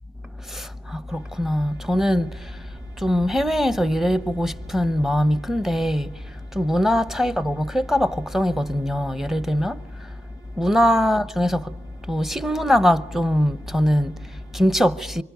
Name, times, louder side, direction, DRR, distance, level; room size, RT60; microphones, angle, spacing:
voice 1, 0.2-10.2 10.5-15.2, equal, ahead, 0.9 m, -22 dB
sound 1, 1.0-14.6, right 4 dB, 70° right, 3.7 m, -47 dB
25.5 x 23.5 x 9.4 m
cardioid pair, 90°, 20 cm